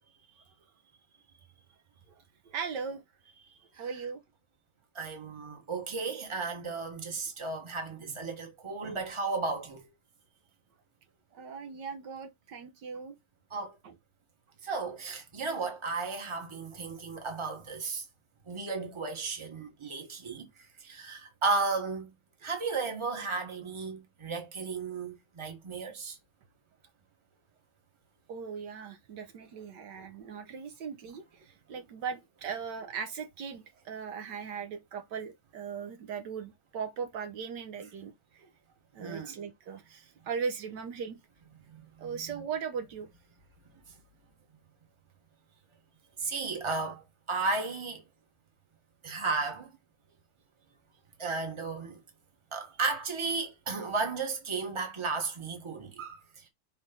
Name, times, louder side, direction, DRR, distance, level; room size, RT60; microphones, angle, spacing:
voice 1, 2.4-4.2 11.3-13.1 13.8-13.9 28.3-38.5 38.9-41.2 42.0-43.1, right 6 dB, 75° right, 1.5 m, -39 dB
voice 2, 4.9-9.9 13.5-13.7 14.6-18.0 18.5-20.5 20.8-22.1 22.4-26.2 39.0-39.4 41.7-42.1 46.2-48.0 49.0-49.7 51.2-52.0 52.5-56.5, right 4 dB, 15° right, 1.3 m, -34 dB
5.7 x 3.3 x 5.2 m
omnidirectional pair, 2.0 m